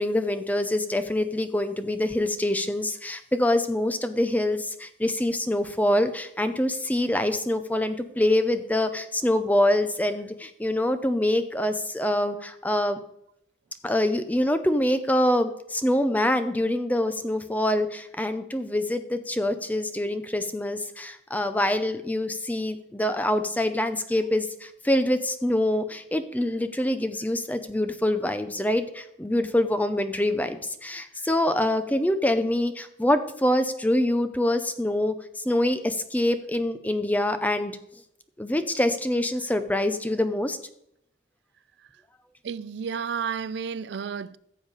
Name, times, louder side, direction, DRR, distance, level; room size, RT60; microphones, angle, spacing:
voice 1, 0.0-13.0 13.8-35.1 35.4-37.8 38.4-40.6, left 1 dB, 10° left, 0.6 m, -25 dB
voice 2, 42.4-44.4, right 6 dB, 80° right, 0.4 m, -31 dB
14.5 x 7.1 x 4.0 m
head